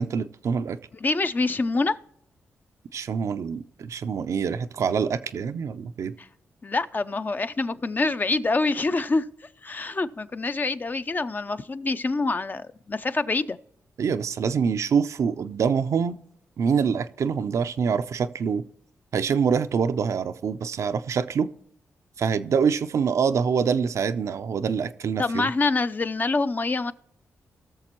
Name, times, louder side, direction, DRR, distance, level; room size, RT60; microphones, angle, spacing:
voice 1, 0.0-0.8 2.9-6.1 14.0-16.2 16.6-18.6 19.1-21.5 22.2-25.5, right 6 dB, 70° right, 0.5 m, -25 dB
voice 2, 0.9-2.0 6.2-6.3 6.6-9.3 9.6-13.6 25.2-26.9, left 3 dB, 35° left, 0.5 m, -26 dB
19.0 x 6.6 x 3.0 m
cardioid pair, 65°, 5 cm